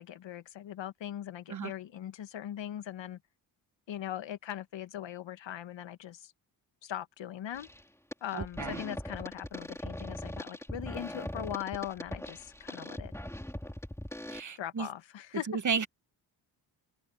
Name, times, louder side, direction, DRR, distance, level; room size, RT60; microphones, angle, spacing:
voice 1, 0.0-3.2 3.9-6.3 6.8-7.7 8.2-13.1 14.6-15.6, left 11 dB, 65° left, 1.6 m, -40 dB
sound 1, 7.5-7.8 8.1-14.4, left 1 dB, 5° left, 3.5 m, -40 dB
voice 2, 8.3-8.8 14.3-14.9 15.5-15.9, right 6 dB, 40° right, 1.3 m, -33 dB
open air
supercardioid pair, 60°, 47 cm